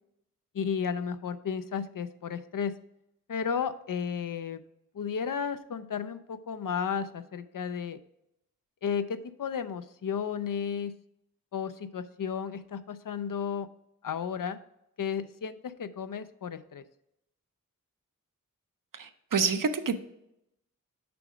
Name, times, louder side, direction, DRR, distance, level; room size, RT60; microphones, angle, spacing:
voice 1, 0.5-2.7 3.3-4.6 4.9-8.0 8.8-10.9 11.5-13.7 14.0-14.6 15.0-16.8, left 7 dB, 75° left, 12 dB, 0.5 m, -33 dB
voice 2, 18.9-20.0, right 5 dB, 70° right, 9 dB, 0.7 m, -28 dB
6.9 x 5.0 x 4.9 m, 0.83 s
wide cardioid pair, 80°, 33 cm